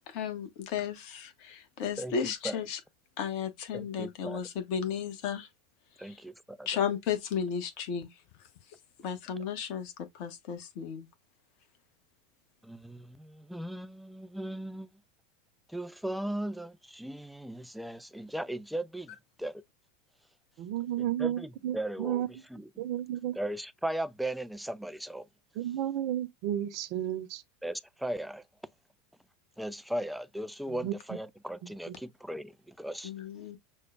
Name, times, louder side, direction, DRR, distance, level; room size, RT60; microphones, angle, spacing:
voice 1, 0.1-2.8 3.2-5.5 6.0-6.2 6.7-8.2 9.0-11.1 33.0-33.6, left 7 dB, 55° left, 0.8 m, -34 dB
voice 2, 2.0-2.6 3.7-4.4 6.0-6.7 12.6-15.0 15.7-19.6 21.0-22.2 22.5-22.6 23.4-25.3 27.6-28.4 29.6-33.1, right 1 dB, ahead, 0.4 m, -37 dB
voice 3, 20.6-22.3 22.8-23.4 25.6-27.4 30.8-30.9 31.9-32.0, right 12 dB, 55° right, 0.6 m, -32 dB
6.2 x 2.1 x 2.3 m
hypercardioid pair, 85°, 0 cm